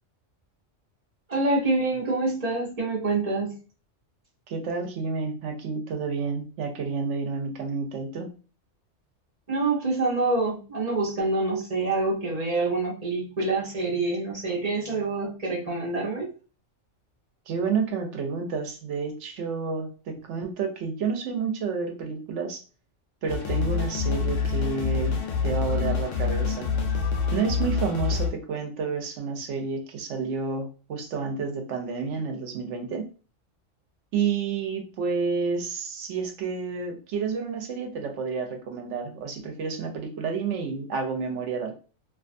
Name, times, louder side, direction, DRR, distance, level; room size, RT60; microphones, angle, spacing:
voice 1, 1.3-3.5 9.5-16.3, right 3 dB, 35° right, -4 dB, 0.8 m, -26 dB
voice 2, 4.5-8.3 17.5-22.6 23.2-26.7 27.3-33.0 34.1-41.7, right 5 dB, 75° right, 4 dB, 0.9 m, -30 dB
sound 1, 23.3-28.3, left 5 dB, 90° left, 0.9 m, -26 dB
2.5 x 2.3 x 2.5 m, 0.35 s
omnidirectional pair, 1.3 m